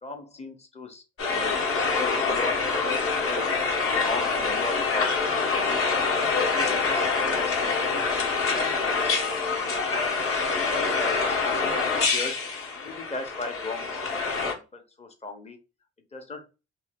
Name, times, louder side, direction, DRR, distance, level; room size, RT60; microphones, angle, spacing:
voice 1, 0.0-2.6 3.2-3.5 4.0-5.7 6.2-8.0 8.3-10.1 10.5-12.4 12.7-14.2 14.7-15.6 16.1-16.5, left 3 dB, 20° left, 5 dB, 0.8 m, -38 dB
sound 1, 1.2-14.5, left 4 dB, 45° left, 0.9 m, -26 dB
2.7 x 2.3 x 3.4 m, 0.31 s
cardioid pair, 90°, 30 cm